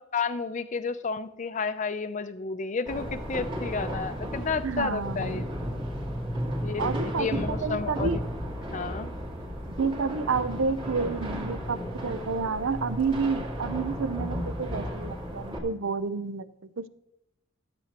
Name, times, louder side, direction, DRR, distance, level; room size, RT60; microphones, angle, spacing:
voice 1, 0.1-5.4 6.6-8.2 8.7-9.1, left 4 dB, 35° left, 10 dB, 0.5 m, -31 dB
sound 1, 2.8-15.6, equal, 25° right, 2.2 m, -34 dB
voice 2, 4.6-5.4 6.8-8.2 9.8-16.5 16.8-16.9, right 4 dB, 65° right, 14 dB, 0.6 m, -30 dB
13.0 x 7.8 x 2.9 m, 0.88 s
head